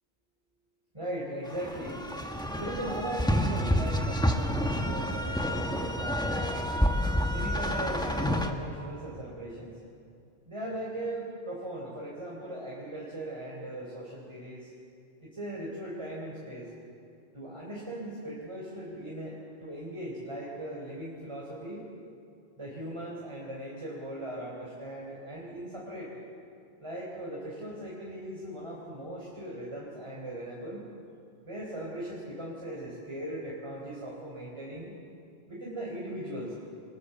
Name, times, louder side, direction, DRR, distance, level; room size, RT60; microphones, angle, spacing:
voice 1, 0.9-2.0 2.5-6.5 7.3-9.8 10.5-14.7 15.2-16.7 17.3-21.8 22.6-26.2 26.8-30.9 31.4-34.9 35.5-36.5, right 1 dB, 30° right, -5 dB, 4.2 m, -39 dB
sound 1, 1.5-8.5, equal, 5° left, 1.4 m, -29 dB
29.0 x 21.5 x 7.1 m, 2.5 s
omnidirectional pair, 1.0 m